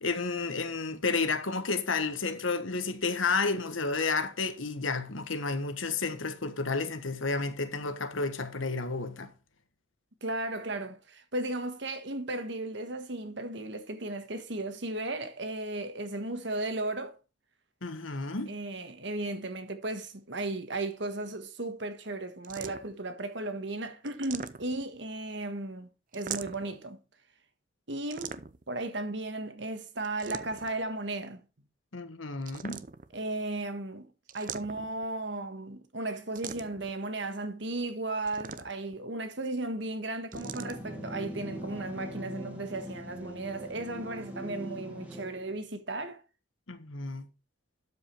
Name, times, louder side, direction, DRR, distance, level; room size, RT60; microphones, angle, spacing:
voice 1, 0.0-9.3 17.8-18.5 31.9-32.8 46.7-47.3, left 4 dB, 85° left, 1.4 m, -31 dB
voice 2, 10.2-17.2 18.5-27.0 27.9-31.4 33.1-46.2, right 2 dB, 65° right, 1.5 m, -35 dB
sound 1, 22.4-23.0 24.1-25.0 26.1-26.8 28.1-28.7 30.0-30.8 32.4-33.2 34.3-35.1 36.4-36.9 38.2-39.0 40.3-40.8, right 7 dB, 40° right, 0.6 m, -41 dB
sound 2, 40.3-45.6, equal, 10° right, 2.0 m, -41 dB
12.0 x 5.4 x 4.5 m
head